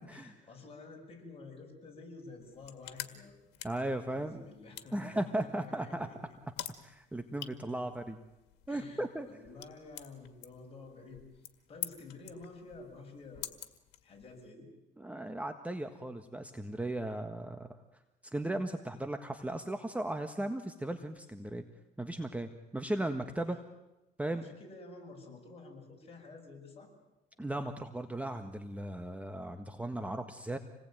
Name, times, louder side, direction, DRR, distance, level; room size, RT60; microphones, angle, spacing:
voice 1, 0.1-3.4 3.7-3.8 4.1-6.4 8.7-11.4 11.7-13.5 14.0-14.7 23.4-23.5 24.3-26.9, left 3 dB, 35° left, 2 dB, 7.7 m, -50 dB
sound 1, 2.4-14.5, left 14 dB, 90° left, 2.0 m, -48 dB
voice 2, 3.6-4.4 4.9-6.1 6.8-8.2 8.7-9.3 15.0-17.8 18.2-21.6 22.0-23.6 24.2-24.5 27.4-30.6, right 1 dB, 10° right, 7 dB, 1.5 m, -36 dB
27.5 x 19.5 x 9.2 m, 0.98 s
cardioid pair, 110°, 17 cm